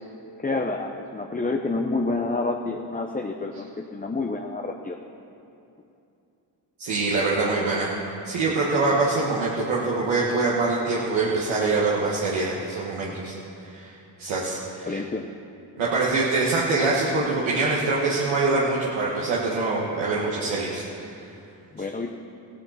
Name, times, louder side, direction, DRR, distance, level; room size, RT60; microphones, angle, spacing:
voice 1, 0.4-5.0 14.8-15.3 21.7-22.1, left 3 dB, 20° left, 3 dB, 0.8 m, -28 dB
voice 2, 6.8-7.9 8.2-15.0 15.8-21.1, right 3 dB, 80° right, -5 dB, 1.5 m, -24 dB
16.0 x 10.0 x 4.2 m, 2.7 s
supercardioid pair, 45°, 47 cm